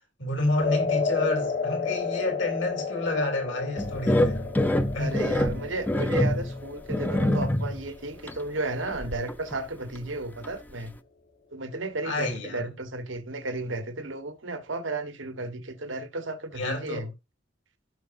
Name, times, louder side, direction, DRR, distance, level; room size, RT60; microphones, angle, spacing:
voice 1, 0.2-4.4 4.9-5.2 12.0-12.7 16.5-17.1, left 2 dB, 70° left, 3.3 m, -29 dB
sound 1, 0.6-8.9, left 5 dB, 55° left, 1.2 m, -32 dB
sound 2, 3.8-7.9 8.3-8.4 8.9-9.6 10.0-10.1 10.4-10.5, left 1 dB, 10° left, 0.6 m, -26 dB
voice 2, 5.0-10.9 11.5-17.1, right 2 dB, 90° right, 1.3 m, -33 dB
15.5 x 6.0 x 2.6 m
head